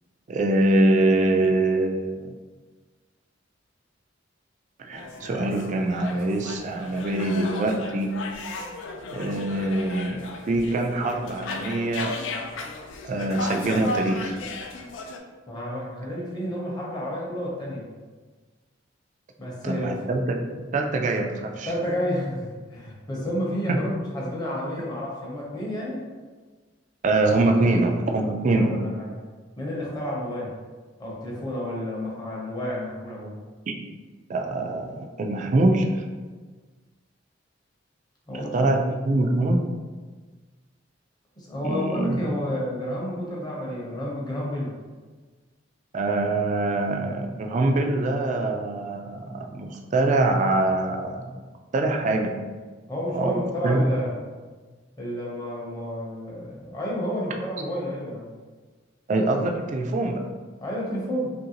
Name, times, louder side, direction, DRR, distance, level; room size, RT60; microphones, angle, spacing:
voice 1, 0.3-2.3 4.8-8.2 9.1-12.1 13.0-14.4 19.6-20.4 20.7-21.7 23.7-23.8 27.0-28.7 33.7-33.8 34.3-36.1 38.3-39.7 41.6-42.2 45.9-51.4 51.7-52.4 53.1-53.9 59.1-60.2, right 2 dB, 40° right, 3 dB, 0.3 m, -24 dB
sound 1, 4.9-15.2, left 2 dB, 80° left, 0.4 m, -35 dB
voice 2, 15.5-17.8 19.4-20.0 21.6-26.0 28.7-29.1 29.6-30.5 31.0-33.4 38.3-38.7 41.4-44.7 52.9-54.2 55.0-58.3 60.6-61.3, equal, 20° left, -5 dB, 0.7 m, -30 dB
3.0 x 2.5 x 2.8 m, 1.4 s
head